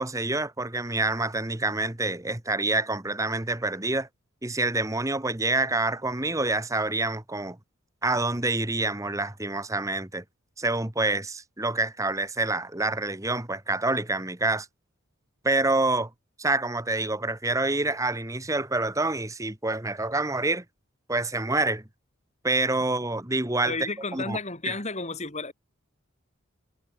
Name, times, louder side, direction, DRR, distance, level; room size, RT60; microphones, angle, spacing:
voice 1, 0.0-4.1 4.4-7.6 8.0-10.2 10.6-14.7 15.4-16.1 16.4-20.6 21.1-21.8 22.4-24.4 24.7-24.8, right 2 dB, 15° right, 1.3 m, -27 dB
voice 2, 23.7-25.5, left 3 dB, 30° left, 3.4 m, -32 dB
head